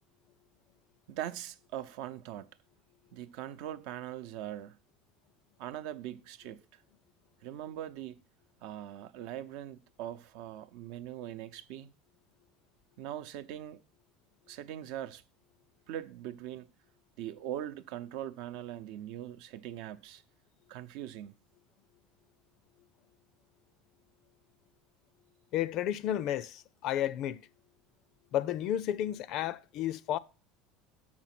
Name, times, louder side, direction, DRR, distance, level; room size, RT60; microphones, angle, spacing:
voice 1, 1.1-2.5 3.1-4.8 5.6-6.8 7.4-8.2 8.6-11.9 13.0-13.8 14.5-15.2 15.9-16.7 17.2-20.2 20.7-21.3, right 12 dB, 65° right, 0.7 m, -41 dB
voice 2, 25.5-27.4 28.3-30.2, left 11 dB, 50° left, 0.4 m, -32 dB
7.3 x 6.1 x 5.9 m
cardioid pair, 145°, 0 cm